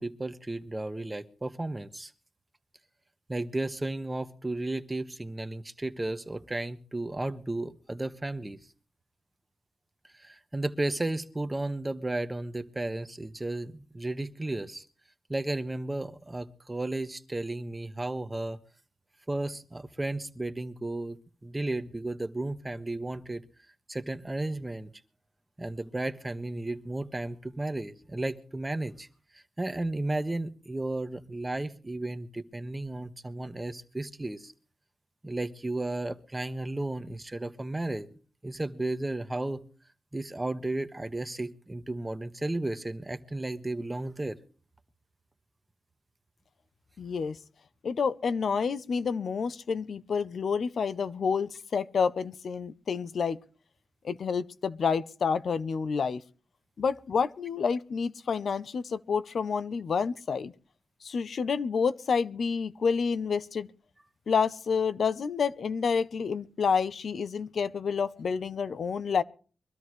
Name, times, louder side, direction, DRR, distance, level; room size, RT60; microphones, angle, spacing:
voice 1, 0.0-2.1 3.3-8.6 10.2-14.8 15.3-18.6 19.3-23.4 23.9-24.9 25.6-29.1 29.3-34.5 35.2-38.1 38.4-39.7 40.1-44.4, right 2 dB, 20° right, 1.3 m, -34 dB
voice 2, 47.0-47.4 47.8-53.4 54.0-56.2 56.8-60.5 61.0-63.7 64.3-69.2, left 6 dB, 75° left, 0.7 m, -29 dB
24.0 x 13.0 x 3.2 m
cardioid pair, 70°, 0 cm